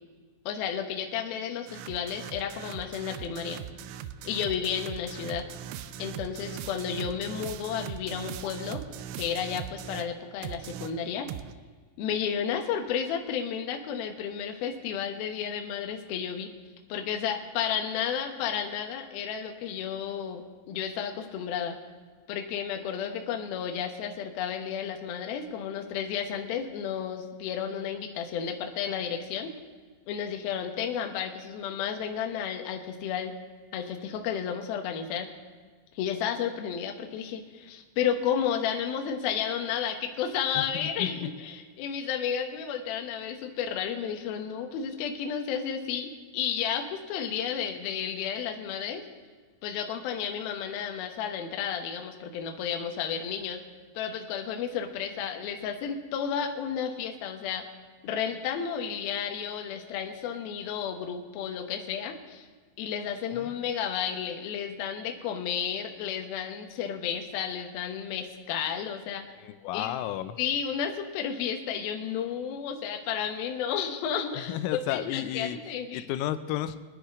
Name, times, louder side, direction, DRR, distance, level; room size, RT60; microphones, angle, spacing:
voice 1, 0.5-3.6 4.2-5.5 6.0-8.8 9.2-11.3 12.0-16.5 16.9-21.8 22.3-29.5 30.1-33.3 33.7-35.3 35.9-49.0 49.6-53.6 53.9-57.6 58.0-62.5 62.8-69.2 69.7-70.0 70.4-76.1, left 8 dB, 70° left, 4 dB, 2.4 m, -32 dB
sound 1, 1.7-10.1 10.4-11.5, right 10 dB, 85° right, 2.6 m, -40 dB
voice 2, 40.6-41.3 63.3-63.5 69.4-70.4 74.5-75.6 75.9-76.8, left 12 dB, 85° left, 11 dB, 3.2 m, -32 dB
24.0 x 9.9 x 3.7 m, 1.5 s
omnidirectional pair, 5.9 m